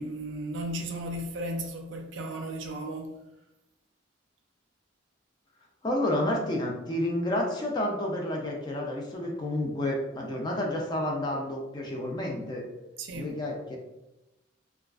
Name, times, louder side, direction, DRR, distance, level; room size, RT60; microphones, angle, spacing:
voice 1, 0.0-3.2 13.0-13.4, right 1 dB, 75° right, 0.4 m, -35 dB
voice 2, 5.8-12.7 13.1-13.8, left 1 dB, 20° left, 0.4 m, -30 dB
2.4 x 2.3 x 2.3 m
head